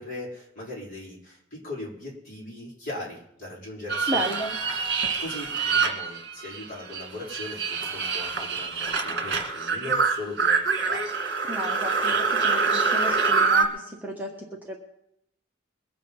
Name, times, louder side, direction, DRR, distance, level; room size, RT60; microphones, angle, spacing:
voice 1, 0.0-4.4 5.2-11.2 12.0-12.2, left 2 dB, 45° left, -5 dB, 5.2 m, -39 dB
sound 1, 3.9-6.6 6.9-13.6, right 4 dB, 55° right, 2.0 m, -25 dB
voice 2, 4.1-4.5 11.5-12.1 12.4-14.8, right 1 dB, 10° right, -1 dB, 1.4 m, -33 dB
22.0 x 7.6 x 5.6 m, 0.75 s
head